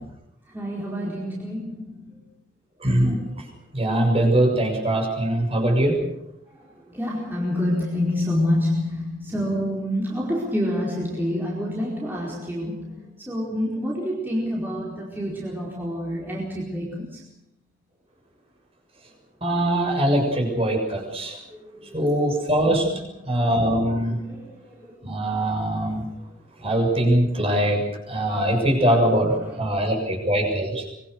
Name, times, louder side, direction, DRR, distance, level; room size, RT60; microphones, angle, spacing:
voice 1, 0.5-2.0 6.9-17.2 21.8-23.5 24.2-24.5 24.8-24.9 29.4-29.6, left 1 dB, 10° right, -4 dB, 4.7 m, -28 dB
voice 2, 2.8-3.2 3.7-6.0 19.4-21.4 21.9-22.9 23.2-24.2 25.0-26.0 26.6-30.9, right 1 dB, 30° right, 1 dB, 6.9 m, -22 dB
25.0 x 23.0 x 6.6 m, 0.84 s
head